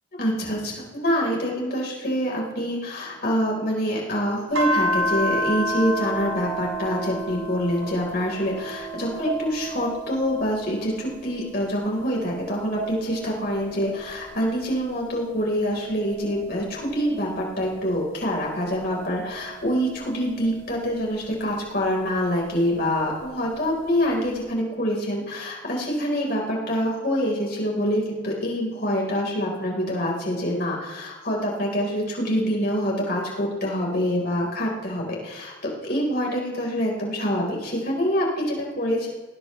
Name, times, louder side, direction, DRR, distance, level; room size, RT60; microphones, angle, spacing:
voice 1, 0.1-39.1, equal, 50° left, -2 dB, 4.4 m, -26 dB
sound 1, 4.5-11.3 11.7-14.6 15.2-18.0 18.7-21.2 22.5-23.6, equal, 85° right, 4.3 m, -32 dB
19.5 x 18.5 x 3.3 m, 1.3 s
head